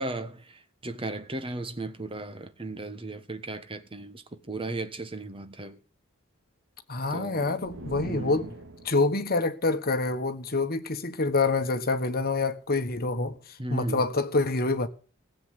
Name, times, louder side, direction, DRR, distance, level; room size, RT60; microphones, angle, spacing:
voice 1, 0.0-5.8 7.1-7.7 8.0-8.5 13.6-14.1, right 2 dB, 25° right, 1.3 m, -36 dB
voice 2, 6.9-8.5 8.8-13.4 13.7-14.9, left 3 dB, 45° left, 1.4 m, -26 dB
sound 1, 7.6-9.3, right 2 dB, 65° right, 2.0 m, -42 dB
16.0 x 8.0 x 8.0 m
head